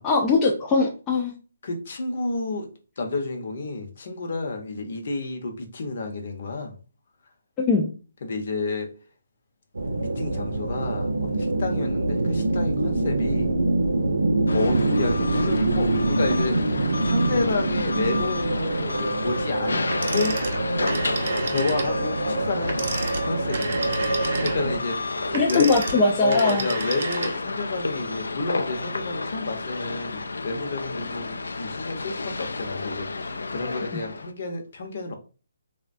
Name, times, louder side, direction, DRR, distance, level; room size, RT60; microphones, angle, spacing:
voice 1, 0.0-1.3 7.6-7.9 25.3-26.7 33.9-34.0, left 3 dB, 15° left, 0.3 m, -21 dB
voice 2, 1.6-2.7 3.0-6.7 8.2-8.9 10.0-13.5 14.5-20.4 21.5-23.7 24.4-25.7 26.2-35.1, left 3 dB, 50° left, 0.7 m, -30 dB
sound 1, 9.7-24.8, right 2 dB, 90° right, 0.6 m, -25 dB
sound 2, 14.5-34.3, left 3 dB, 90° left, 0.3 m, -32 dB
Telephone, 19.9-22.0 22.6-27.6, right 3 dB, 50° right, 0.6 m, -31 dB
3.3 x 2.2 x 2.5 m
hypercardioid pair, 165°, 0 cm